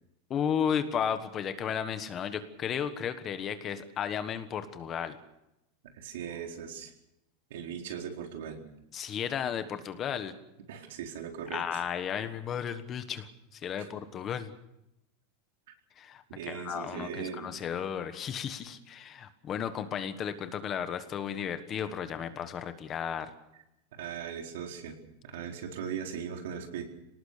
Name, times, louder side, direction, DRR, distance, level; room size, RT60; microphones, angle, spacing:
voice 1, 0.3-5.2 8.9-10.3 11.5-14.5 16.0-23.3, left 8 dB, 20° left, 10 dB, 1.3 m, -34 dB
voice 2, 5.9-6.9 7.5-8.6 10.7-11.8 13.8-13.9 16.3-17.6 23.9-26.8, right 7 dB, 70° right, 3 dB, 4.3 m, -39 dB
26.0 x 19.0 x 6.7 m, 0.85 s
supercardioid pair, 170°, 0 cm